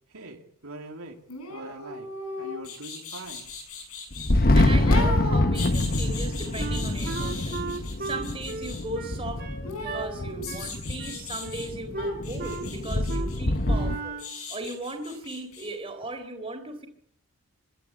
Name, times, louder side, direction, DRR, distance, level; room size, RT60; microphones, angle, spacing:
voice 1, 0.1-1.2 1.5-2.1 2.4-3.5, right 2 dB, 80° right, 2 dB, 2.6 m, -42 dB
sound 1, 1.3-4.3 4.9-8.8 9.6-11.7 12.0-15.7 16.0-16.1, left 3 dB, 85° left, 6.6 m, -37 dB
Thunder, 4.1-14.0, left 1 dB, 40° left, 1.1 m, -26 dB
voice 2, 4.2-7.6 8.0-9.4 9.8-14.2 14.5-16.9, right 2 dB, 25° right, 4 dB, 3.7 m, -37 dB
Wind instrument woodwind instrument, 6.6-10.1 10.5-10.7 11.0-11.7 11.9-12.7 13.1-13.3 13.6-14.3, right 4 dB, 45° right, 2.5 m, -36 dB
27.0 x 12.5 x 8.5 m, 0.68 s
head